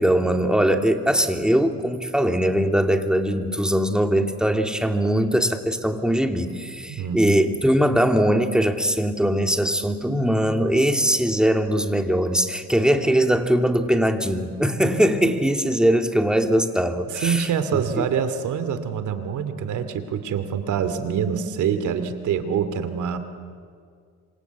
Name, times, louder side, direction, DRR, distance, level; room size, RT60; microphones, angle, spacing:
voice 1, 0.0-17.5 18.0-18.1, equal, 5° right, 5 dB, 2.5 m, -21 dB
voice 2, 6.9-7.4 10.1-10.2 17.2-23.2, right 7 dB, 75° right, 10 dB, 2.7 m, -25 dB
27.0 x 26.5 x 8.3 m, 2.1 s
cardioid pair, 90°, 30 cm